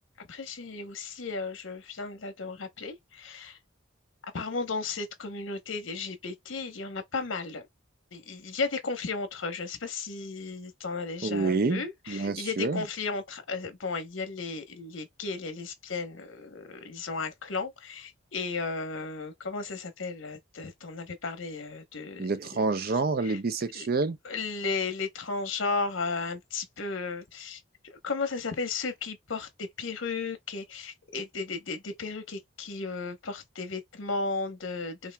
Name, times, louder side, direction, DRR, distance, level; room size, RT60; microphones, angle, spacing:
voice 1, 0.2-3.6 4.3-7.6 8.1-22.3 23.2-23.4 23.7-23.9 24.2-35.1, left 4 dB, 75° left, 0.9 m, -34 dB
voice 2, 11.2-12.8 22.2-24.2, right 4 dB, 50° right, 0.5 m, -28 dB
5.6 x 2.5 x 2.2 m
head